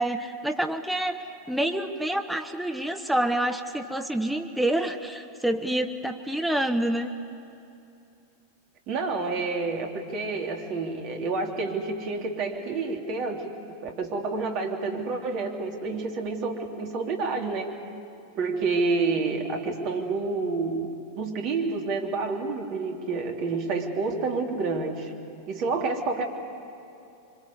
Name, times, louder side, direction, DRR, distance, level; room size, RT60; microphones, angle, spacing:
voice 1, 0.0-7.1, right 1 dB, ahead, 5 dB, 1.1 m, -27 dB
voice 2, 8.9-13.5 13.8-17.7 18.3-25.1 25.5-26.3, right 3 dB, 40° right, 2 dB, 3.3 m, -29 dB
26.5 x 24.5 x 8.2 m, 2.7 s
figure-of-eight pair, 90°, 0 cm